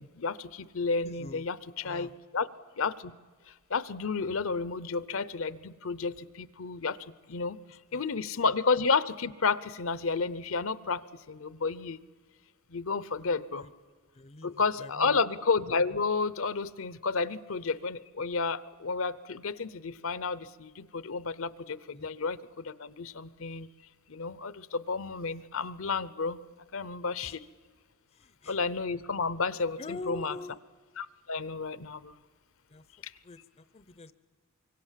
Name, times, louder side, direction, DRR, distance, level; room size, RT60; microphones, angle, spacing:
voice 1, 0.0-2.5 2.8-3.1 3.7-7.0 7.3-7.6 7.9-12.0 12.7-13.7 14.4-23.7 24.1-26.4 26.7-27.4 28.5-30.4 31.0-32.2 33.0-33.1, left 4 dB, 60° left, 17 dB, 0.7 m, -31 dB
voice 2, 1.0-1.4 1.8-2.1 7.9-8.0 13.6-13.7 14.1-15.2 21.9-22.1 27.2-27.4 28.1-28.6 29.8-30.6 32.7-32.8 33.2-34.1, left 2 dB, 30° left, 13 dB, 0.6 m, -44 dB
25.0 x 24.0 x 7.5 m, 1.5 s
head